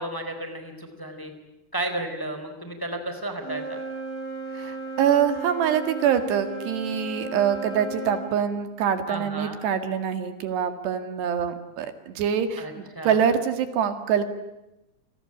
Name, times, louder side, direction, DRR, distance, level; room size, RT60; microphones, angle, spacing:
voice 1, 0.0-1.3 1.7-3.8 9.1-9.6 12.6-13.2, right 1 dB, 5° left, 7 dB, 3.5 m, -33 dB
Wind instrument woodwind instrument, 3.3-8.3, right 2 dB, 30° right, 7.3 m, -35 dB
voice 2, 4.5-14.2, right 8 dB, 80° right, 9 dB, 4.0 m, -25 dB
29.0 x 20.5 x 9.9 m, 0.91 s
omnidirectional pair, 4.8 m